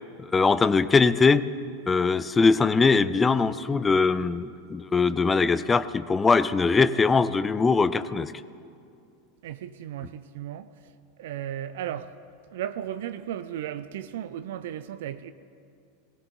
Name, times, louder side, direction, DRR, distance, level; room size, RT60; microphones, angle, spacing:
voice 1, 0.2-1.5 1.9-8.3, left 4 dB, 15° left, 0.4 m, -21 dB
voice 2, 9.4-10.7 11.2-12.1 12.5-15.3, right 11 dB, 60° right, 0.4 m, -35 dB
19.5 x 17.5 x 2.2 m
figure-of-eight pair, 85°, 0 cm